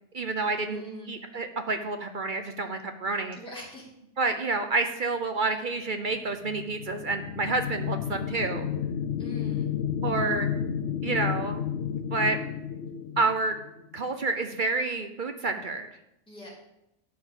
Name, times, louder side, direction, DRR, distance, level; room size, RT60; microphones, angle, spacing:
voice 1, 0.1-3.4 4.2-8.7 10.0-10.5 11.0-11.6 12.1-12.4 13.2-13.6 13.9-15.9, right 3 dB, 50° right, 7 dB, 0.8 m, -29 dB
voice 2, 0.6-1.1 3.4-3.9 9.2-9.7 16.3-16.5, equal, 5° left, -5 dB, 2.7 m, -42 dB
sound 1, 6.3-14.0, left 8 dB, 70° left, 0.9 m, -32 dB
11.5 x 5.0 x 7.2 m, 0.84 s
omnidirectional pair, 1.2 m